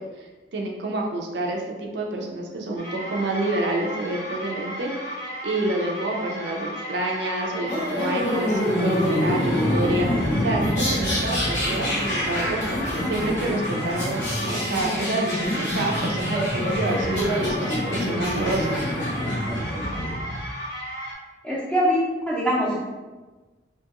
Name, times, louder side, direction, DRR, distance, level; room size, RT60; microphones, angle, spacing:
voice 1, 0.5-4.9 5.4-12.6 13.1-18.8, right 2 dB, 65° right, 0 dB, 0.4 m, -28 dB
sound 1, 2.8-21.1, equal, 60° left, 0.8 m, -35 dB
sound 2, 7.7-20.4, left 1 dB, 80° left, 1.1 m, -26 dB
voice 2, 21.4-22.8, equal, 5° left, -6 dB, 0.6 m, -23 dB
2.8 x 2.3 x 2.9 m, 1.3 s
head